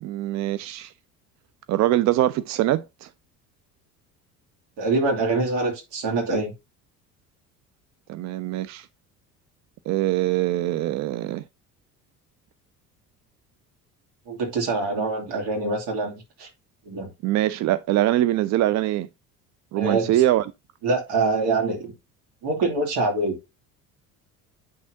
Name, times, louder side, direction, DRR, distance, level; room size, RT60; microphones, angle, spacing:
voice 1, 0.0-0.9 1.7-3.1 8.1-8.9 9.9-11.4 17.2-19.1 19.7-20.5, right 14 dB, 40° right, 0.5 m, -23 dB
voice 2, 4.8-6.5 14.3-16.5 16.8-17.1 19.8-20.2 20.8-21.9 22.4-23.4, right 3 dB, 55° right, 2.7 m, -25 dB
8.7 x 6.1 x 2.7 m
figure-of-eight pair, 60°, 46 cm